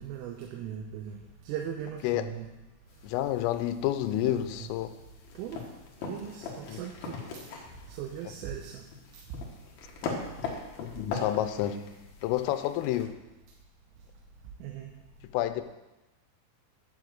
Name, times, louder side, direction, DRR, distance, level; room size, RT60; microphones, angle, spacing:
voice 1, 0.0-2.5 4.2-4.7 5.4-5.6 6.1-7.2 7.9-8.8 9.1-9.2 14.6-14.9, right 9 dB, 80° right, 2 dB, 3.4 m, -39 dB
sound 1, 2.9-13.1, left 4 dB, 60° left, 2.7 m, -41 dB
voice 2, 3.0-4.9 6.7-6.8 10.8-11.9 12.2-13.2 15.3-15.6, left 13 dB, 85° left, 10 dB, 3.2 m, -29 dB
8.6 x 7.4 x 7.8 m, 1.0 s
omnidirectional pair, 5.9 m